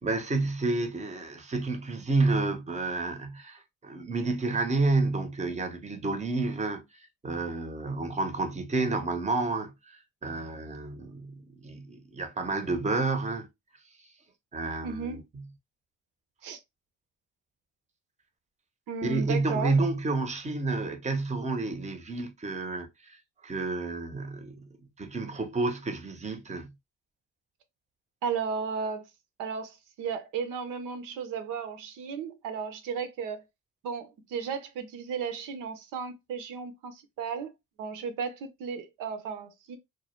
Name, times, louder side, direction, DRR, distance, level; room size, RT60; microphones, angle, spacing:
voice 1, 0.0-13.5 14.5-15.4 19.0-24.7 25.0-26.7, right 3 dB, 20° right, 0.7 m, -30 dB
voice 2, 14.8-15.2 16.4-16.6 18.9-19.7 28.2-29.1 29.4-33.4 33.8-37.5 37.8-39.8, right 6 dB, 75° right, 0.7 m, -34 dB
2.2 x 2.1 x 2.9 m
supercardioid pair, 70°, 32 cm